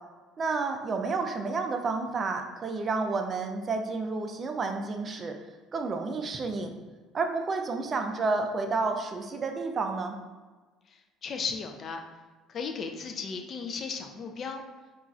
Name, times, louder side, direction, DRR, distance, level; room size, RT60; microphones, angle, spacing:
voice 1, 0.4-5.4 5.7-6.7 7.1-10.2, right 3 dB, 40° right, 5 dB, 0.3 m, -30 dB
voice 2, 10.9-12.0 12.5-14.6, left 5 dB, 45° left, 4 dB, 0.4 m, -35 dB
2.9 x 2.4 x 2.4 m, 1.3 s
supercardioid pair, 80°, 0 cm